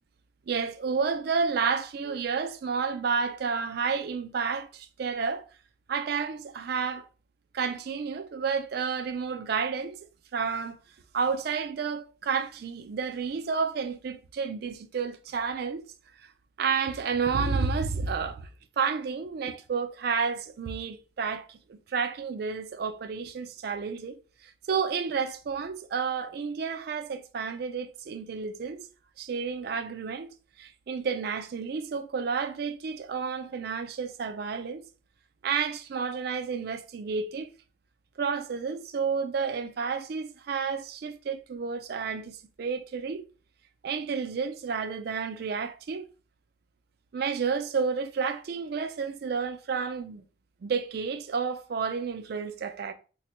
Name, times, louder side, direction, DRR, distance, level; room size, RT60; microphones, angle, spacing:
voice 1, 0.5-5.5 5.9-7.1 7.5-10.0 10.3-10.8 11.1-15.8 16.6-18.5 18.8-24.2 24.4-28.8 29.2-30.3 30.6-34.8 35.4-37.5 38.2-43.2 43.8-46.1 47.1-50.2 50.6-52.9, right 5 dB, 50° right, 0.3 m, -31 dB
4.1 x 2.2 x 2.9 m
head